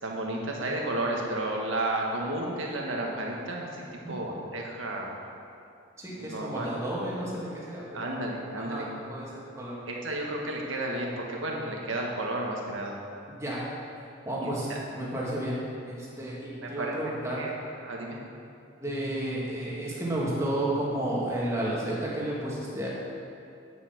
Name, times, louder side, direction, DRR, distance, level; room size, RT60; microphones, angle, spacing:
voice 1, 0.0-5.2 6.0-6.7 7.9-8.9 9.9-12.9 14.4-14.8 16.6-17.0 17.4-17.5 17.8-18.2, right 1 dB, 90° right, -1 dB, 1.5 m, -32 dB
voice 2, 6.0-8.2 8.6-9.8 13.4-13.6 14.2-14.7 14.9-17.5 18.8-22.9, right 1 dB, 15° right, -6 dB, 2.0 m, -32 dB
8.8 x 7.4 x 5.9 m, 2.6 s
head